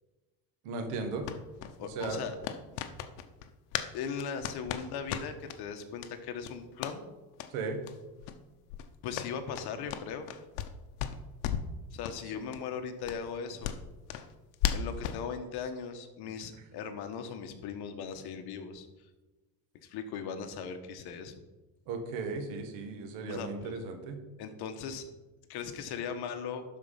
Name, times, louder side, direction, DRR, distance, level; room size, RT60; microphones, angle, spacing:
voice 1, 0.6-1.2 1.8-2.2 7.5-7.8 21.9-24.2, right 4 dB, 85° right, 6 dB, 1.8 m, -36 dB
sound 1, 1.2-3.9 4.2-5.6 6.0-6.1 6.4-7.0 7.3-7.5 7.8-7.9 8.2-8.4 8.7-10.7 11.0-11.7 12.0-12.2 12.5-12.6 13.0-15.2, left 10 dB, 80° left, 0.9 m, -36 dB
voice 2, 1.8-2.3 3.9-7.0 9.0-10.3 11.9-13.7 14.7-18.9 19.8-21.3 23.3-23.8 24.4-25.0 25.5-26.6, left 6 dB, 60° left, 7 dB, 1.3 m, -38 dB
12.0 x 4.7 x 5.7 m, 1.1 s
cardioid pair, 130°, 44 cm